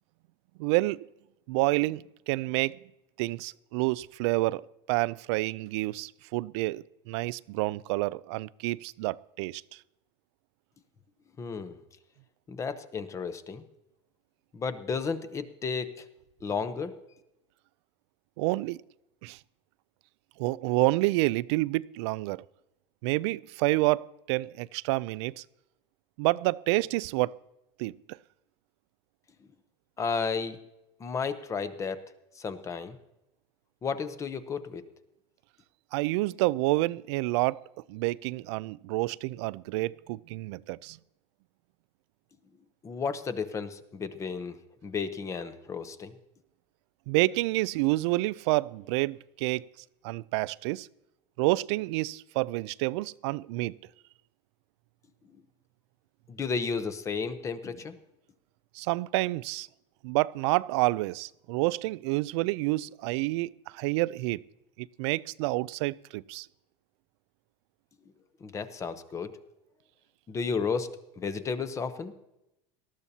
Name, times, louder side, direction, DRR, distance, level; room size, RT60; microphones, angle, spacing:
voice 1, 0.6-1.1 1.5-2.8 3.2-4.6 4.9-9.6 18.4-18.8 19.2-19.4 20.4-22.4 23.0-25.4 26.2-27.4 27.8-28.2 35.9-37.6 37.9-41.0 47.1-49.6 50.0-50.9 51.4-53.8 58.8-59.7 60.0-64.4 64.8-66.5, right 20 dB, 75° right, 0.4 m, -28 dB
voice 2, 11.4-11.8 12.5-13.6 14.5-16.0 16.4-16.9 30.0-30.6 31.0-32.0 32.4-33.0 33.8-34.8 42.8-44.6 44.8-46.1 56.3-58.0 68.4-69.3 70.3-70.9 71.2-72.1, left 5 dB, 20° left, 0.8 m, -33 dB
19.0 x 13.5 x 2.8 m
supercardioid pair, 150°, 15 cm